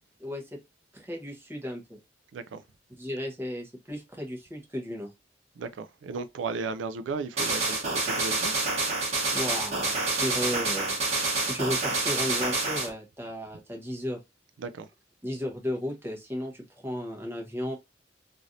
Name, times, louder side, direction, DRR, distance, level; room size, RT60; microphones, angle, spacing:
voice 1, 0.2-0.6 0.9-2.0 3.0-5.1 9.3-11.0 11.4-14.2 15.2-17.7, equal, 15° right, 0.9 m, -34 dB
voice 2, 5.6-8.5 14.6-14.9, right 4 dB, 90° right, 0.4 m, -35 dB
sound 1, 7.4-12.9, right 3 dB, 35° right, 1.1 m, -28 dB
3.2 x 2.6 x 2.5 m
head